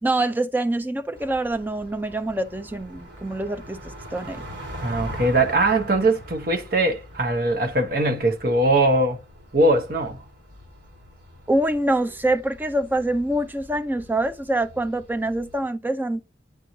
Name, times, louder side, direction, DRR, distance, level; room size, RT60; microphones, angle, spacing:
voice 1, 0.0-3.8 4.1-4.4 11.5-16.2, right 1 dB, 10° right, 0.4 m, -25 dB
sound 1, 1.1-15.6, equal, 80° right, 2.6 m, -42 dB
voice 2, 4.8-9.2 9.5-10.2, right 2 dB, 50° right, 1.0 m, -21 dB
9.2 x 3.1 x 4.0 m
head